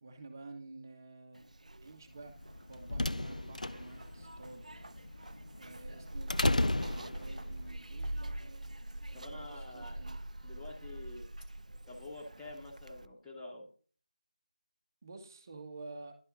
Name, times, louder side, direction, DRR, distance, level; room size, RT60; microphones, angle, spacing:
voice 1, 0.0-2.4 2.7-4.6 5.6-8.6 9.1-10.2 15.0-16.2, right 3 dB, 25° right, 6 dB, 1.1 m, -50 dB
Zipper (clothing), 1.3-13.1, right 1 dB, 65° right, 0.4 m, -45 dB
sound 1, 2.4-7.7, left 2 dB, 70° left, 0.4 m, -34 dB
voice 2, 9.1-10.0 10.4-11.3 11.9-13.7, left 2 dB, 5° left, -6 dB, 0.7 m, -47 dB
11.5 x 4.2 x 3.9 m, 0.43 s
figure-of-eight pair, 165°, 4 cm